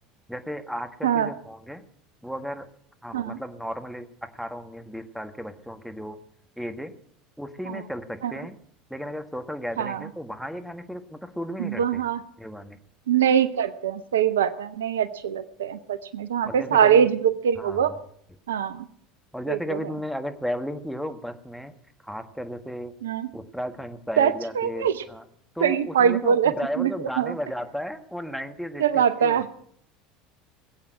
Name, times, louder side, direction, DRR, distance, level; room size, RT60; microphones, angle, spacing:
voice 1, 0.3-1.8 2.2-2.7 3.0-4.1 4.3-6.2 6.6-6.9 7.4-8.6 8.9-12.0 12.4-12.8 16.4-17.1 17.5-18.0 19.3-21.7 22.0-22.9 23.3-25.2 25.5-29.5, equal, ahead, 8 dB, 1.6 m, -34 dB
voice 2, 11.6-12.2 13.1-17.9 18.5-18.8 19.5-19.6 23.0-23.3 24.2-24.9 25.6-26.9 27.2-27.3 28.8-29.5, right 8 dB, 75° right, 14 dB, 0.7 m, -23 dB
20.5 x 8.6 x 6.2 m, 0.64 s
figure-of-eight pair, 70°, 0 cm